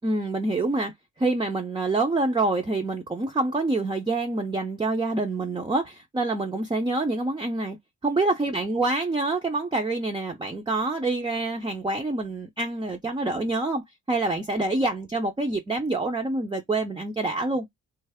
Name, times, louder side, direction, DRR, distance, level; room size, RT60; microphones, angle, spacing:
voice 1, 0.0-0.9 1.2-7.8 8.0-17.7, right 2 dB, 15° right, 0.7 m, -26 dB
3.3 x 2.0 x 3.4 m
cardioid pair, 90°, 30 cm